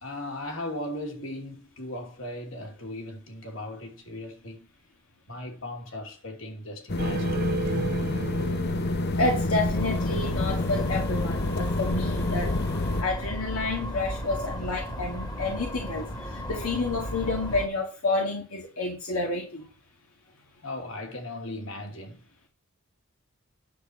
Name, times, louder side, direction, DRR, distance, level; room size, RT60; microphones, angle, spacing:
voice 1, 0.0-4.7 5.3-7.7 20.6-22.5, left 1 dB, 65° left, 3.0 m, -38 dB
sound 1, 6.9-13.0, left 2 dB, 50° left, 0.8 m, -28 dB
sound 2, 7.0-10.0, right 4 dB, 45° right, 0.5 m, -35 dB
voice 2, 9.2-12.6 13.0-19.7, left 2 dB, 85° left, 2.1 m, -29 dB
sound 3, 9.7-17.7, equal, 20° left, 1.6 m, -34 dB
10.0 x 4.6 x 7.2 m
head